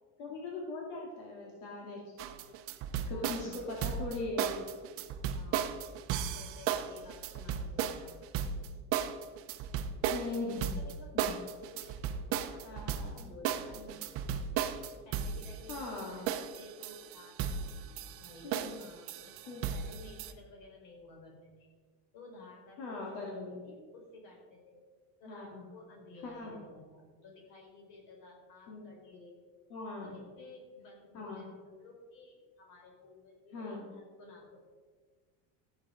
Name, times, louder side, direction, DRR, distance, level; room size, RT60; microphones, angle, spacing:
voice 1, 0.2-2.0 3.1-4.6 10.1-10.8 11.1-11.4 12.6-13.3 13.8-14.0 15.7-16.2 18.4-18.8 19.5-19.6 22.8-23.6 25.3-25.6 26.2-26.5 28.7-28.9 29.7-30.1 31.1-31.4 33.5-33.8, left 3 dB, 80° left, -2 dB, 2.7 m, -40 dB
sound 1, 2.2-20.3, right 8 dB, 40° right, 0.7 m, -35 dB
voice 2, 3.1-3.9 5.3-5.9 6.3-8.7 10.7-17.6 18.2-21.7 22.1-24.8 25.2-29.4 30.0-34.6, left 2 dB, 55° left, 0 dB, 4.3 m, -54 dB
14.0 x 8.5 x 5.2 m, 1.5 s
cardioid pair, 175°, 36 cm